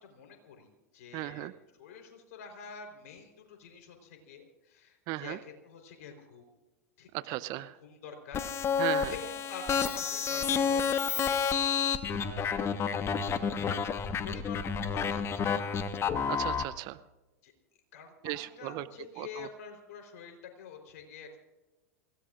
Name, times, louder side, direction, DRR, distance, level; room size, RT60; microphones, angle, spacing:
voice 1, 0.0-1.5 1.8-6.5 7.0-7.3 7.8-8.7 9.1-11.7 12.0-13.6 14.2-15.3 15.6-15.9 17.4-17.5 17.9-21.4, left 5 dB, 60° left, 4 dB, 4.0 m, -47 dB
voice 2, 1.1-1.5 5.1-5.4 7.1-7.8 8.8-9.1 16.3-17.0 18.2-18.9 19.2-19.5, right 18 dB, 45° right, 16 dB, 0.7 m, -36 dB
sound 1, 8.3-16.6, left 6 dB, 30° left, 1.3 m, -30 dB
28.0 x 17.0 x 2.5 m, 1.1 s
hypercardioid pair, 90°, 9 cm